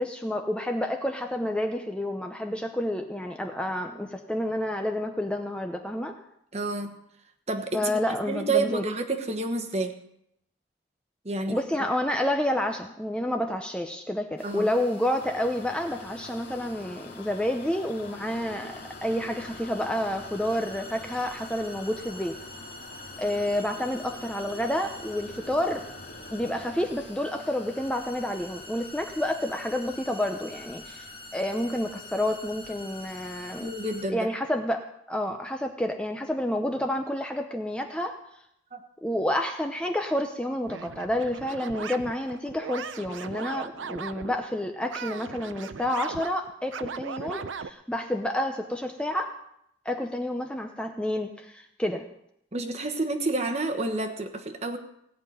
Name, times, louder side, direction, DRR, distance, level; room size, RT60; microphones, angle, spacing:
voice 1, 0.0-6.2 7.7-8.8 11.5-22.4 23.2-25.8 26.3-31.1 31.3-33.7 34.1-38.2 39.0-49.3 49.8-52.1, left 1 dB, 5° left, 4 dB, 0.7 m, -29 dB
voice 2, 6.5-7.0 7.5-9.9 11.2-11.6 14.4-14.7 33.6-34.3 38.7-38.8 52.5-54.8, right 3 dB, 35° right, 6 dB, 1.2 m, -29 dB
sound 1, 14.4-34.0, left 2 dB, 30° left, 1.4 m, -45 dB
sound 2, 15.2-27.0, left 2 dB, 50° left, 1.2 m, -46 dB
sound 3, 40.7-44.4 44.9-47.7, right 5 dB, 75° right, 0.6 m, -38 dB
16.5 x 5.8 x 9.3 m, 0.76 s
head